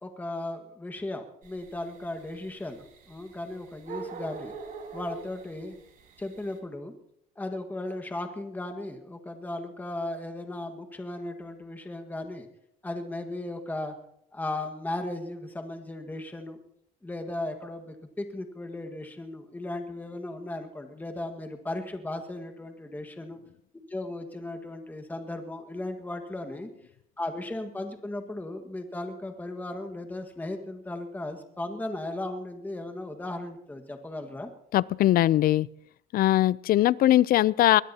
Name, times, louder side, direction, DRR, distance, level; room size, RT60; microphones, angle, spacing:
voice 1, 0.0-4.5 4.9-5.8 6.2-6.9 7.4-12.5 12.8-13.9 14.3-16.6 17.0-23.4 23.9-26.7 27.2-34.5, left 2 dB, 10° left, 5 dB, 1.6 m, -36 dB
sound 1, 1.4-6.6, right 5 dB, 55° right, 4.5 m, -43 dB
voice 2, 34.7-35.7 36.1-37.8, left 14 dB, 60° left, 21 dB, 0.5 m, -21 dB
21.5 x 20.0 x 2.9 m, 0.74 s
cardioid pair, 110°, 17 cm